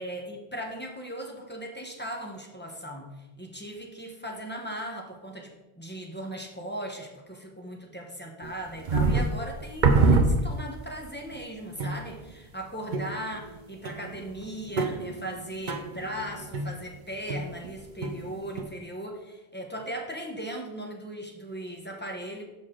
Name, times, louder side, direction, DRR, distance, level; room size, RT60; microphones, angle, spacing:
voice 1, 0.0-22.4, right 1 dB, 10° left, 1 dB, 0.8 m, -38 dB
sound 1, 8.4-10.9 11.3-11.4 11.8-12.3 12.9-13.6 13.8-17.7 18.0-18.6, right 3 dB, 50° right, 0.7 m, -26 dB
6.6 x 6.4 x 3.7 m, 1.0 s
omnidirectional pair, 1.1 m